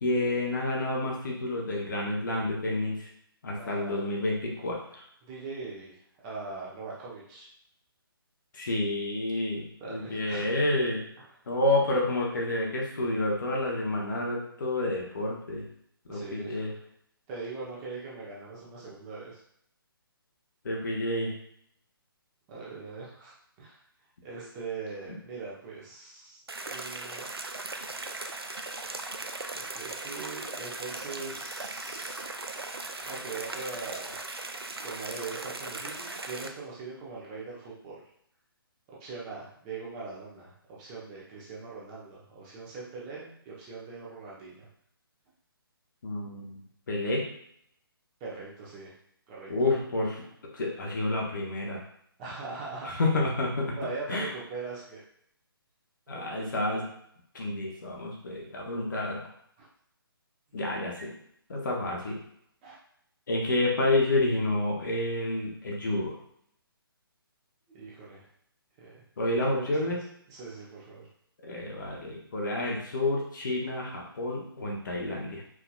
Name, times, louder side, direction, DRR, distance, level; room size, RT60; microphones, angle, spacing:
voice 1, 0.0-3.1 3.4-5.0 8.5-11.1 11.5-15.6 16.1-16.7 20.6-21.3 46.0-46.6 46.9-47.3 49.5-50.2 50.5-51.8 52.8-53.7 54.1-54.3 56.1-56.8 57.3-59.2 60.5-61.1 61.5-62.2 63.3-66.2 69.2-70.0 71.4-75.4, left 2 dB, 55° left, -2 dB, 1.1 m, -29 dB
voice 2, 3.6-4.1 5.2-6.0 6.2-7.5 9.5-10.5 16.1-16.7 17.3-19.4 22.5-23.8 24.2-26.4 26.7-27.3 29.5-32.2 33.0-34.2 34.8-38.0 38.9-44.7 48.2-48.9 49.3-49.5 52.2-52.9 53.8-55.0 56.1-56.8 59.6-59.7 62.6-62.8 67.7-68.3 68.8-69.0 69.4-69.9 70.3-71.1, right 4 dB, 20° right, -6 dB, 1.0 m, -41 dB
sound 1, 26.5-36.5, right 2 dB, 85° right, 0.5 m, -38 dB
4.7 x 2.8 x 2.3 m, 0.69 s
figure-of-eight pair, 140°, 12 cm